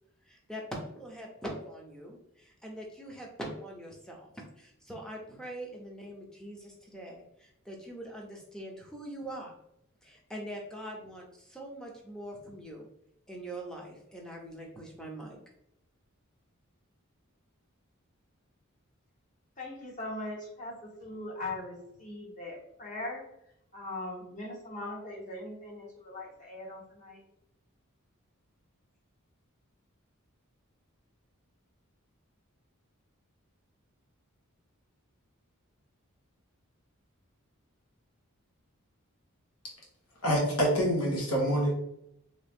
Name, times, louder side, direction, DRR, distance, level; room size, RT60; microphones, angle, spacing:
voice 1, 0.3-4.3 4.6-9.5 10.0-12.9 13.3-15.4, right 1 dB, 5° left, -1 dB, 0.7 m, -43 dB
voice 2, 19.6-20.7 21.0-23.2 23.7-27.2, left 2 dB, 35° left, -3 dB, 1.1 m, -40 dB
voice 3, 40.2-41.7, equal, 85° left, -1 dB, 1.3 m, -26 dB
3.0 x 2.8 x 3.5 m, 0.76 s
head